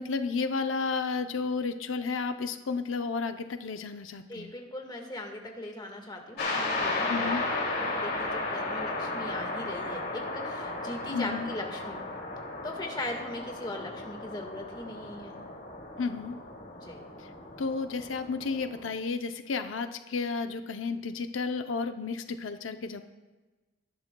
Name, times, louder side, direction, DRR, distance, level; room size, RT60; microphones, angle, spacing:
voice 1, 0.0-4.5 7.1-7.4 11.1-11.5 16.0-16.4 17.2-17.3 17.6-23.0, left 4 dB, 90° left, 8 dB, 0.6 m, -32 dB
voice 2, 4.3-12.0 12.6-15.3 16.7-17.0, left 1 dB, 25° left, 2 dB, 1.6 m, -39 dB
sound 1, 6.4-18.9, left 2 dB, 60° left, 2.5 m, -35 dB
20.0 x 11.0 x 2.3 m, 1.2 s
head